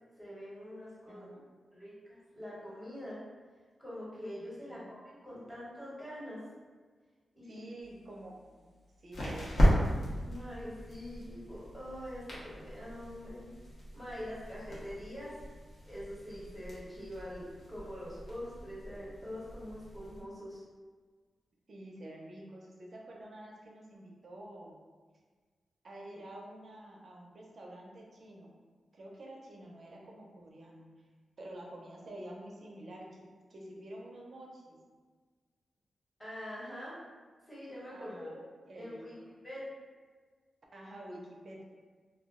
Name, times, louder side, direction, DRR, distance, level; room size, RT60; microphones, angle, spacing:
voice 1, 0.2-1.3 1.7-3.2 3.8-6.4 7.4-7.7 10.2-13.4 13.9-15.3 15.9-20.6 36.2-37.0 37.5-38.4 38.7-39.1 39.4-39.7, equal, 5° left, -9 dB, 1.0 m, -44 dB
voice 2, 1.1-1.4 4.7-4.9 7.4-8.7 9.0-9.9 21.7-24.8 25.8-28.5 28.9-30.9 31.4-33.2 33.5-34.8 37.9-38.4 38.7-39.3 40.7-41.6, right 1 dB, 45° right, -2 dB, 0.5 m, -48 dB
sound 1, 7.8-20.2, equal, 60° left, 0.7 m, -35 dB
2.3 x 2.0 x 3.5 m, 1.5 s
wide cardioid pair, 165°, 0 cm